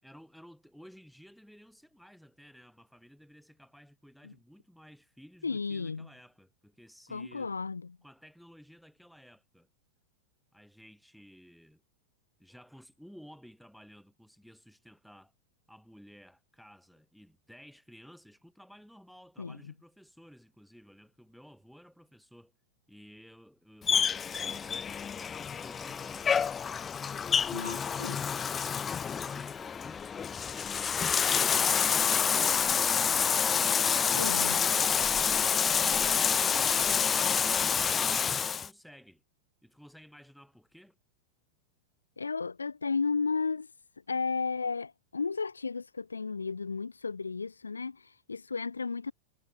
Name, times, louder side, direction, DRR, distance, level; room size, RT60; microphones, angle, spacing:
voice 1, 0.0-7.6 8.0-9.7 10.5-11.8 12.4-15.3 15.7-22.5 22.9-25.1 25.6-28.7 29.1-30.9 38.0-39.2 39.6-41.0, equal, ahead, 3.9 m, -55 dB
voice 2, 5.4-6.1 7.1-8.0 19.4-19.6 27.5-28.2 34.2-34.6 42.2-43.7 44.1-49.1, left 4 dB, 75° left, 0.5 m, -33 dB
Bathtub (filling or washing), 23.8-38.7, left 7 dB, 20° left, 0.3 m, -28 dB
figure-of-eight pair, 90°, 0 cm